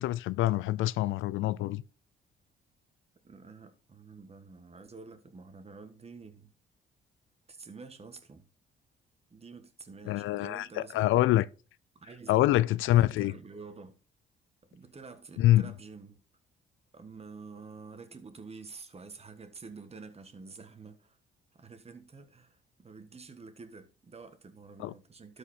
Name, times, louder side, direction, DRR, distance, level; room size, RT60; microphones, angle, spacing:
voice 1, 0.0-1.8 10.1-10.7 10.9-11.5 12.3-13.3 15.4-15.7 24.8-24.9, left 15 dB, 85° left, 0.4 m, -25 dB
voice 2, 3.2-6.5 7.5-8.4 9.3-11.2 11.9-12.6 12.9-14.0 14.7-16.2 16.9-21.2 21.5-25.4, right 4 dB, 30° right, 1.5 m, -49 dB
12.5 x 5.0 x 4.3 m
cardioid pair, 90°, 20 cm